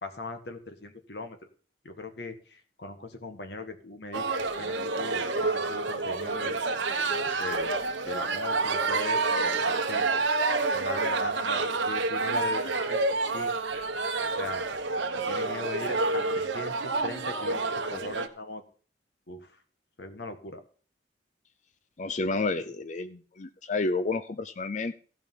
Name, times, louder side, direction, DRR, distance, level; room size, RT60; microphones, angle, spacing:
voice 1, 0.0-1.4 1.8-6.6 7.4-7.7 8.0-10.1 10.7-13.5 14.4-14.6 15.1-18.6 19.3-19.5 20.0-20.6, left 2 dB, 60° left, 8 dB, 1.5 m, -39 dB
sound 1, 4.1-18.3, right 3 dB, 80° right, 1.1 m, -28 dB
voice 2, 22.0-24.9, left 3 dB, 40° left, 12 dB, 0.5 m, -30 dB
15.5 x 5.2 x 5.5 m, 0.42 s
head